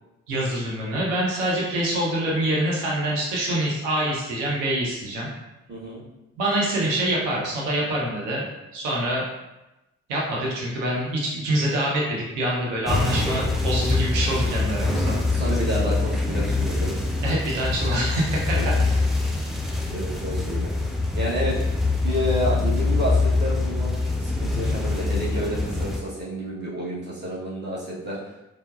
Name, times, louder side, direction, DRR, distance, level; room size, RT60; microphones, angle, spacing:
voice 1, 0.3-5.3 6.4-8.5 8.7-9.2 10.1-15.2 17.2-18.6, right 1 dB, 75° right, -4 dB, 0.8 m, -25 dB
voice 2, 5.7-6.0 15.3-16.9 17.8-17.9 18.5-18.7 19.9-20.7 21.1-21.6 22.0-28.3, equal, 30° right, -7 dB, 1.4 m, -30 dB
sound 1, 12.9-26.0, left 3 dB, ahead, 0.4 m, -24 dB
4.4 x 2.1 x 2.5 m, 0.99 s
figure-of-eight pair, 40°, 37 cm